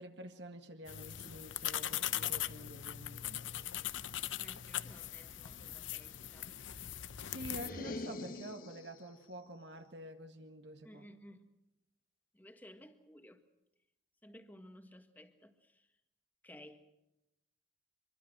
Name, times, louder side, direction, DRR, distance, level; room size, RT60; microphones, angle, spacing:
voice 1, 0.0-3.7 7.3-11.1, right 1 dB, 70° right, 5 dB, 1.7 m, -48 dB
sound 1, 0.9-7.7, left 12 dB, 90° left, 0.8 m, -40 dB
voice 2, 4.4-6.6 10.8-11.5 12.3-13.4 14.2-15.9 16.4-16.8, left 1 dB, 10° left, 6 dB, 1.6 m, -56 dB
sound 2, 7.5-9.1, left 2 dB, 50° left, 1.2 m, -44 dB
25.5 x 23.0 x 6.3 m, 0.87 s
head